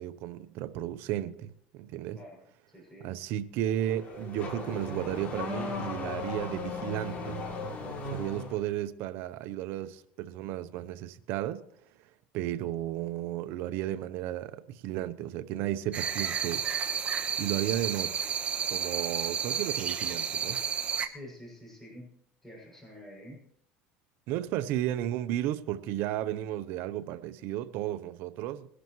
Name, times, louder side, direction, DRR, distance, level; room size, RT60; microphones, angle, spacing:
voice 1, 0.0-2.2 3.0-7.4 7.9-11.6 12.3-16.6 17.4-18.3 18.7-20.6 24.3-28.7, right 12 dB, 65° right, 0.8 m, -34 dB
voice 2, 2.1-3.1 21.0-22.1 22.4-23.4, equal, 10° left, 6.7 m, -48 dB
Car / Accelerating revving vroom, 3.6-8.7, left 3 dB, 40° left, 2.9 m, -37 dB
sound 1, 15.9-21.1, right 7 dB, 30° right, 1.1 m, -31 dB
21.5 x 11.5 x 3.1 m
supercardioid pair, 120°, 4 cm